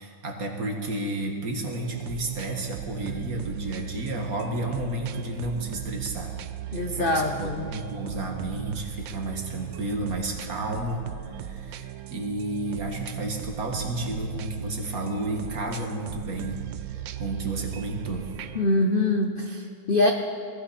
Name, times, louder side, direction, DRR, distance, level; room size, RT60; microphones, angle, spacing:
voice 1, 0.0-6.3 6.9-18.3, right 2 dB, 50° right, 3 dB, 2.0 m, -32 dB
sound 1, 1.7-18.7, right 10 dB, 80° right, 1.4 m, -37 dB
voice 2, 6.7-7.7 18.5-20.1, left 2 dB, 50° left, 3 dB, 0.7 m, -24 dB
21.5 x 15.0 x 4.3 m, 2.3 s
omnidirectional pair, 2.0 m